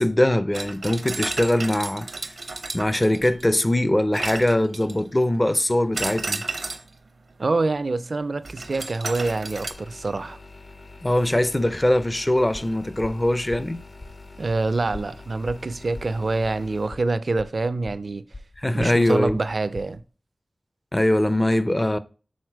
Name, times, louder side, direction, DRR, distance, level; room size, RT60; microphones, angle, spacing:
voice 1, 0.0-2.1 2.7-6.4 11.0-13.8 18.6-19.4 20.9-22.0, left 1 dB, 25° left, 0.5 m, -22 dB
sound 1, 0.5-3.5 4.1-5.1 5.9-6.9 8.4-9.7, right 3 dB, 90° right, 0.9 m, -32 dB
voice 2, 7.4-10.4 14.4-18.2 18.7-20.0, right 3 dB, 70° right, 0.5 m, -26 dB
sound 2, 9.1-16.9, left 3 dB, 70° left, 1.5 m, -45 dB
sound 3, 12.5-20.0, left 2 dB, 50° left, 1.4 m, -42 dB
6.5 x 4.0 x 4.5 m
wide cardioid pair, 45°, 0 cm